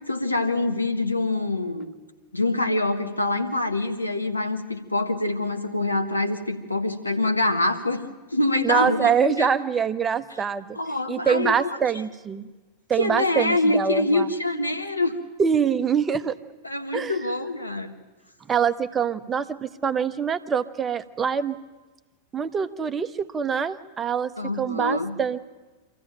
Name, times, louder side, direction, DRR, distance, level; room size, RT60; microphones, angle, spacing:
voice 1, 0.1-1.9 2.3-9.5 10.7-11.8 13.0-15.2 16.6-17.9 24.4-25.1, left 2 dB, 85° left, 6 dB, 1.5 m, -25 dB
voice 2, 8.6-10.8 11.1-12.5 12.9-14.3 15.4-16.3 16.9-17.1 18.5-21.6 22.3-24.3 24.6-25.4, right 7 dB, 20° right, 11 dB, 0.9 m, -24 dB
25.0 x 14.5 x 9.0 m, 1.2 s
figure-of-eight pair, 90°, 0 cm